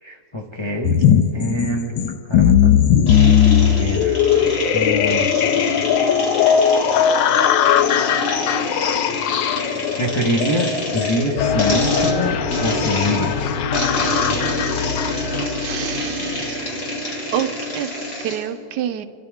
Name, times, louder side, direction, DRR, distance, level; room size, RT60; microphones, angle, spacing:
voice 1, 0.0-1.0 1.3-1.9 2.3-2.7 3.6-4.2 4.7-5.3 9.9-13.5, equal, 20° left, -1 dB, 0.9 m, -25 dB
sound 1, 0.8-15.5, left 8 dB, 90° left, 1.3 m, -18 dB
sound 2, 3.1-18.5, left 1 dB, 45° left, 2.4 m, -27 dB
sound 3, 11.4-16.7, left 6 dB, 65° left, 1.1 m, -27 dB
voice 2, 15.6-16.8 17.3-17.5 17.7-19.1, right 10 dB, 75° right, 10 dB, 1.2 m, -28 dB
28.0 x 12.5 x 3.6 m, 3.0 s
omnidirectional pair, 1.9 m